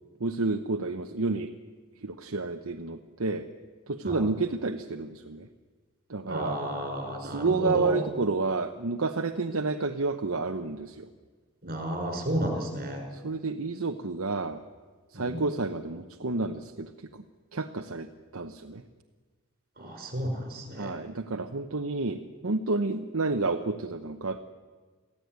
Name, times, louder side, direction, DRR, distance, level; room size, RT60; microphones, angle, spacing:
voice 1, 0.2-1.5 2.0-3.5 3.9-5.5 6.1-6.6 7.2-11.1 13.1-14.6 15.1-17.2 17.5-18.1 18.3-18.8 20.8-24.4, right 3 dB, 65° right, 5 dB, 1.0 m, -30 dB
voice 2, 6.3-8.0 11.6-13.0 15.1-15.4 19.8-21.0, right 1 dB, 45° right, 4 dB, 5.7 m, -32 dB
23.5 x 15.5 x 9.5 m, 1.4 s
head